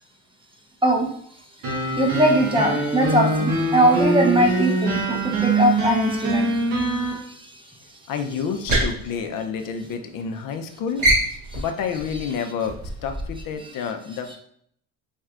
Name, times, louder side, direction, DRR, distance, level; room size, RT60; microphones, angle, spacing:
sound 1, 1.6-7.1, right 2 dB, 85° right, 1.2 m, -23 dB
voice 1, 1.9-7.6 11.5-11.6 13.6-13.7, right 1 dB, 15° right, 1 dB, 0.7 m, -21 dB
voice 2, 8.1-11.1 11.6-12.8 13.0-14.4, left 6 dB, 65° left, 6 dB, 0.6 m, -29 dB
sound 2, 8.5-10.1 10.4-10.7 11.0-13.5, right 1 dB, 40° right, 1.5 m, -25 dB
4.4 x 3.2 x 2.4 m, 0.65 s
cardioid pair, 100°, 36 cm